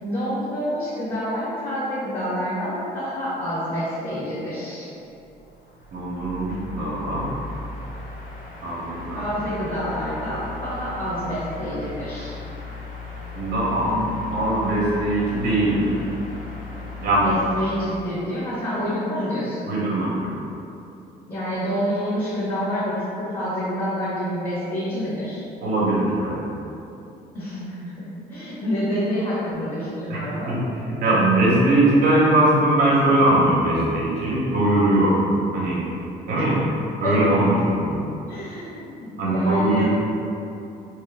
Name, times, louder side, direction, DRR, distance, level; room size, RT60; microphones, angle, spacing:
voice 1, 0.0-4.9 9.1-12.4 17.2-19.7 21.3-25.5 27.3-30.6 36.3-36.4 37.0-37.2 38.3-39.8, equal, 30° left, -12 dB, 1.4 m, -28 dB
sound 1, 5.2-17.9, left 3 dB, 50° left, 0.7 m, -37 dB
voice 2, 5.9-7.3 8.6-9.3 13.3-16.0 17.0-17.3 19.7-20.3 25.6-26.4 30.1-30.2 30.5-30.6 30.9-35.1 35.5-35.8 36.3-36.5 37.0-38.0 39.2-39.8, right 1 dB, 70° right, -6 dB, 1.1 m, -21 dB
3.1 x 2.9 x 3.5 m, 2.8 s
cardioid pair, 110°, 17 cm